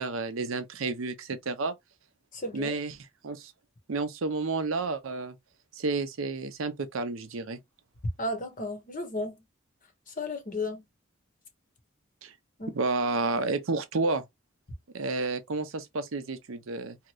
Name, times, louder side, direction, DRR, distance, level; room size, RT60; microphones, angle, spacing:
voice 1, 0.0-1.7 2.5-3.5 3.9-5.4 5.7-7.6 12.2-12.3 12.7-14.2 14.9-17.0, right 3 dB, 85° right, 0.6 m, -31 dB
voice 2, 2.3-2.8 8.2-9.4 10.2-10.8 12.6-12.7, left 2 dB, 40° left, 1.0 m, -33 dB
2.8 x 2.5 x 3.0 m
head